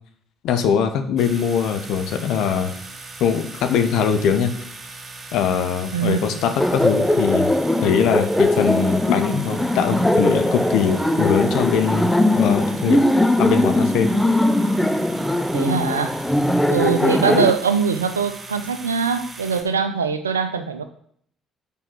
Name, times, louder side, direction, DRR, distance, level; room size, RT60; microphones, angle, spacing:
voice 1, 0.4-2.7 3.2-4.5 5.3-7.5 7.8-13.0 13.4-14.1, left 7 dB, 65° left, 8 dB, 0.9 m, -21 dB
sound 1, 1.2-19.6, right 3 dB, 35° right, 1.9 m, -39 dB
voice 2, 5.9-6.4 14.5-14.8 15.5-16.2 16.7-20.8, right 6 dB, 90° right, 10 dB, 0.5 m, -22 dB
Laughter, 6.6-17.5, left 1 dB, 5° left, 0.7 m, -20 dB
6.8 x 5.6 x 6.2 m, 0.65 s
figure-of-eight pair, 50°, 0 cm